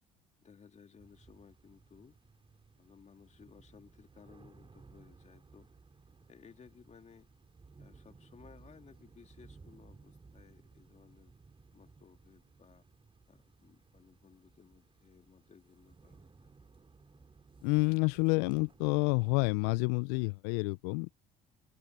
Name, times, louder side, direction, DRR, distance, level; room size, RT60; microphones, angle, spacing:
voice 1, 0.4-2.2 2.8-5.7 6.3-7.3 7.8-11.3 11.7-12.9 13.3-16.3 16.6-16.7, left 6 dB, 35° left, 2.8 m, -59 dB
sound 1, 1.0-19.5, right 4 dB, 25° right, 4.2 m, -59 dB
voice 2, 17.6-21.1, left 31 dB, 75° left, 0.5 m, -29 dB
hypercardioid pair, 65°, 21 cm